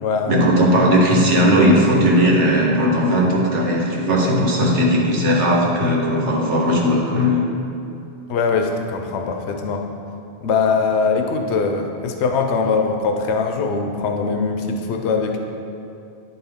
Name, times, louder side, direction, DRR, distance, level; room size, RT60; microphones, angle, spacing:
voice 1, 0.3-7.4, equal, 85° right, -2 dB, 1.4 m, -17 dB
voice 2, 8.3-9.9 10.4-15.4, left 4 dB, 80° left, 4 dB, 0.9 m, -21 dB
9.8 x 4.4 x 3.5 m, 2.7 s
omnidirectional pair, 1.1 m